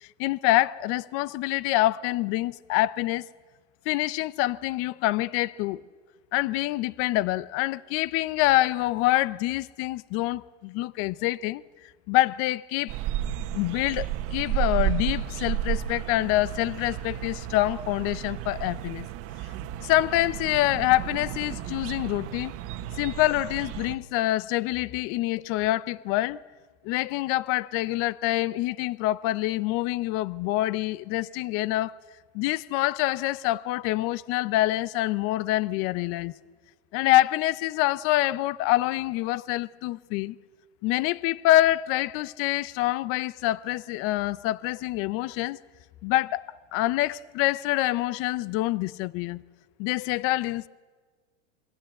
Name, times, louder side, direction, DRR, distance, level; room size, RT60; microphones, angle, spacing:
voice 1, 0.0-3.3 3.9-5.8 6.3-11.6 12.1-13.0 13.5-19.1 19.8-22.5 23.0-26.4 26.8-31.9 32.3-36.3 36.9-40.4 40.8-45.6 46.0-46.4 46.7-49.4 49.8-50.7, left 16 dB, 40° left, 0.7 m, -26 dB
sound 1, 12.9-23.9, right 12 dB, 40° right, 1.5 m, -32 dB
26.5 x 23.0 x 7.8 m
supercardioid pair, 130°, 35 cm